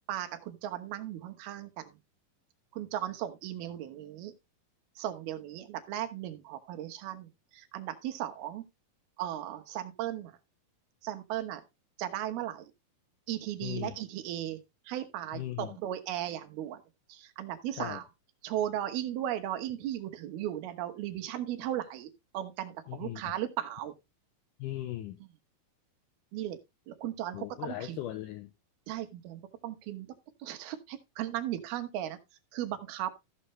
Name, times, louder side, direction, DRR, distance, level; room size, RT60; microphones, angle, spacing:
voice 1, 0.1-2.0 2.7-4.3 5.0-8.6 9.2-10.4 11.0-11.6 12.0-12.7 13.3-14.6 14.9-16.8 17.1-18.1 18.4-23.9 26.3-26.6 26.9-28.0 28.9-30.1 30.4-32.2 32.5-33.1, right 12 dB, 80° right, 3.0 m, -36 dB
voice 2, 13.6-13.9 15.3-15.8 17.8-18.0 22.9-23.2 24.6-25.2 27.3-28.5, left 14 dB, 80° left, 1.9 m, -38 dB
14.5 x 6.8 x 3.1 m
omnidirectional pair, 4.5 m